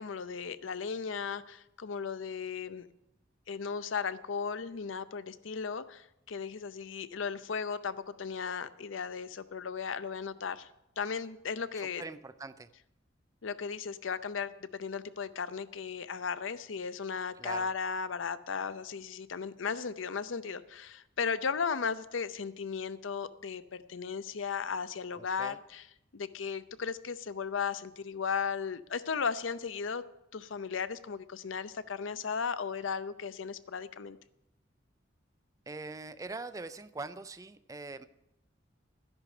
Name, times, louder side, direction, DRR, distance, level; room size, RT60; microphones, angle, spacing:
voice 1, 0.0-2.9 3.5-10.7 11.0-12.0 13.4-25.9 26.1-30.0 30.3-34.2, left 6 dB, 80° left, 14 dB, 0.6 m, -36 dB
voice 2, 11.8-12.7 17.4-17.7 25.2-25.6 35.7-38.1, right 3 dB, 15° right, 13 dB, 0.4 m, -43 dB
13.0 x 10.5 x 5.0 m, 0.85 s
head